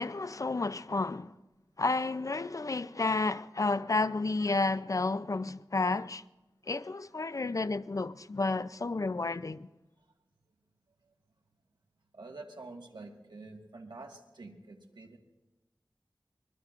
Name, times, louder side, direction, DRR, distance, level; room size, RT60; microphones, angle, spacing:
voice 1, 0.0-1.3 1.8-6.2 6.7-9.7, left 3 dB, 50° left, 0.5 m, -31 dB
voice 2, 12.1-15.2, right 3 dB, 80° right, 1.7 m, -47 dB
24.0 x 22.0 x 2.5 m
wide cardioid pair, 65°, 8 cm